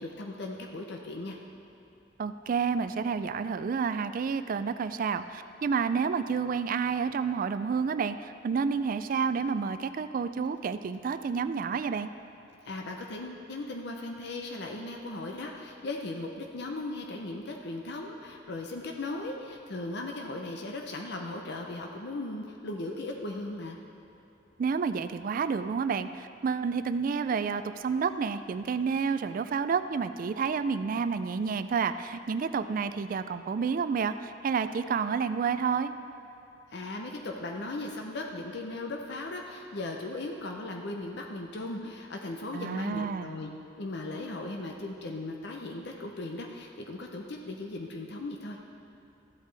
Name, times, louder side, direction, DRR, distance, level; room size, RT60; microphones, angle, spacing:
voice 1, 0.0-1.4 12.6-23.8 36.7-43.5 43.8-48.6, left 2 dB, 60° left, 1 dB, 0.7 m, -37 dB
voice 2, 2.2-12.1 24.6-35.9 42.5-43.3, right 5 dB, 45° right, 11 dB, 0.3 m, -30 dB
14.0 x 8.1 x 3.4 m, 2.9 s
head